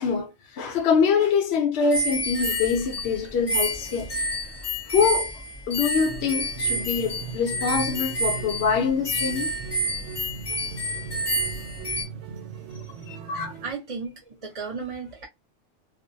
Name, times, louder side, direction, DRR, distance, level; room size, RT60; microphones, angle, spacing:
voice 1, 0.0-4.2 4.9-5.3 5.7-9.5 12.7-13.5, left 6 dB, 70° left, 0.9 m, -24 dB
sound 1, 1.9-12.0, equal, 30° left, 0.5 m, -29 dB
sound 2, 2.6-13.7, right 6 dB, 80° right, 0.9 m, -40 dB
voice 2, 13.6-15.3, right 5 dB, 35° right, 0.8 m, -35 dB
2.4 x 2.0 x 2.6 m
omnidirectional pair, 1.2 m